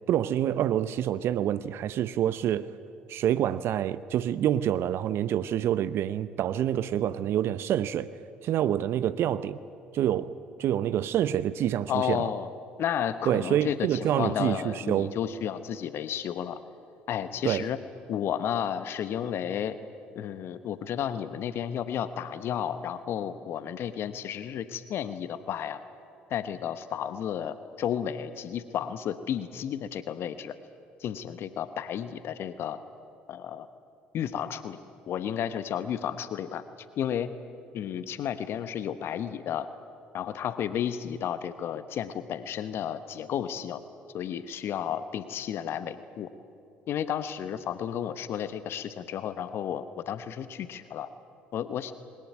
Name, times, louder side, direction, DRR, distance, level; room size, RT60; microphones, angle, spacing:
voice 1, 0.1-2.7 3.1-8.1 8.4-9.6 9.9-12.3 13.3-15.1 17.4-17.7, right 11 dB, 55° right, 0.7 m, -27 dB
voice 2, 11.9-12.5 12.8-16.6 17.1-17.8 18.1-19.8 20.1-25.8 26.3-30.5 31.0-32.8 33.3-33.7 34.1-34.8 35.1-36.6 37.0-37.3 37.7-39.7 40.1-43.8 44.1-46.3 46.9-51.1 51.5-51.9, left 9 dB, 55° left, 1.0 m, -32 dB
22.0 x 19.5 x 9.4 m
hypercardioid pair, 55°, 5 cm